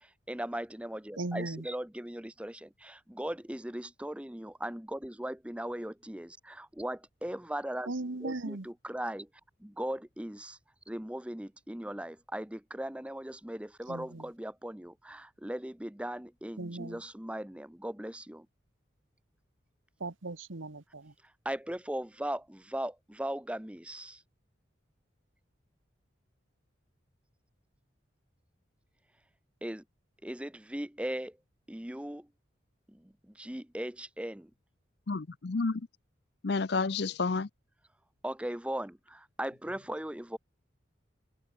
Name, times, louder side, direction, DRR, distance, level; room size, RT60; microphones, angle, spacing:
voice 1, 0.0-7.9 8.2-9.2 9.8-10.6 10.9-18.5 21.4-24.2 29.6-29.8 30.2-31.4 31.7-32.3 32.9-34.5 38.2-40.4, right 1 dB, 5° right, 0.7 m, -38 dB
voice 2, 1.2-1.7 7.9-8.7 13.9-14.3 16.6-17.0 20.0-21.1, right 2 dB, 85° right, 1.3 m, -38 dB
voice 3, 35.1-35.8 36.4-37.5, left 4 dB, 55° left, 0.6 m, -30 dB
open air
head